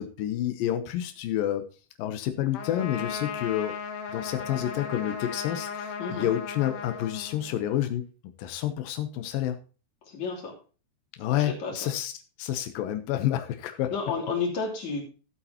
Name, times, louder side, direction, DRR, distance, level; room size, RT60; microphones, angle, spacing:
voice 1, 0.0-1.6 2.0-3.7 4.1-8.0 8.4-9.6 11.2-12.1 12.4-13.9, left 12 dB, 80° left, 8 dB, 2.0 m, -29 dB
Trumpet, 2.5-7.8, left 6 dB, 60° left, 2.5 m, -36 dB
voice 2, 6.0-6.3 10.1-10.6 11.4-11.8 13.9-15.0, left 4 dB, 45° left, 0 dB, 4.0 m, -31 dB
14.5 x 8.4 x 2.8 m, 0.35 s
omnidirectional pair, 5.2 m